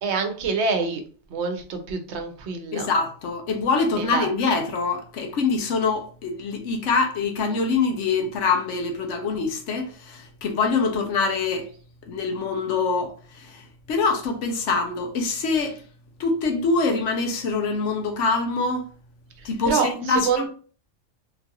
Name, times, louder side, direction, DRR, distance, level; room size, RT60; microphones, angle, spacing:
voice 1, 0.0-1.0 1.3-2.9 4.0-4.3 19.4-20.5, right 5 dB, 65° right, 0.9 m, -26 dB
voice 2, 2.7-11.7 12.1-15.8 16.2-18.9 19.4-20.5, left 4 dB, 75° left, 1.0 m, -24 dB
3.7 x 2.4 x 2.8 m
omnidirectional pair, 1.3 m